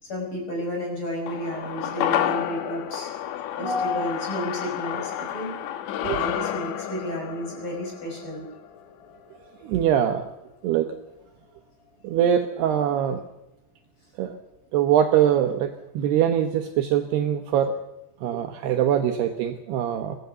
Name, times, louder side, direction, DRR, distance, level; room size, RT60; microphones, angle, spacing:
voice 1, 0.0-3.1 3.6-5.6 6.1-8.5, left 1 dB, 30° left, 0 dB, 6.0 m, -31 dB
sound 1, 1.3-9.8 10.1-10.2, left 11 dB, 75° left, 3.5 m, -31 dB
voice 2, 9.6-10.3 10.6-11.0 12.0-13.2 14.2-14.4 14.7-17.7 18.2-20.2, right 10 dB, 70° right, 5 dB, 2.7 m, -23 dB
23.0 x 16.5 x 6.8 m, 0.92 s
omnidirectional pair, 5.4 m